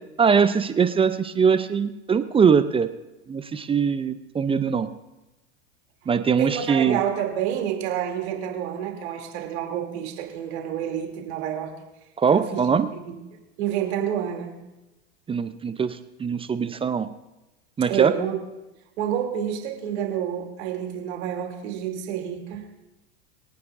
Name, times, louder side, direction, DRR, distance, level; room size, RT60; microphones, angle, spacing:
voice 1, 0.2-2.9 3.3-4.9 6.1-7.0 12.2-12.9 15.3-17.1 17.8-18.1, right 6 dB, 15° right, 11 dB, 0.6 m, -22 dB
voice 2, 6.4-11.7 12.3-12.6 12.9-13.2 13.6-14.5 17.9-18.4 19.0-22.6, right 10 dB, 70° right, 2 dB, 2.9 m, -28 dB
23.0 x 9.5 x 2.6 m, 1.0 s
hypercardioid pair, 105°, 34 cm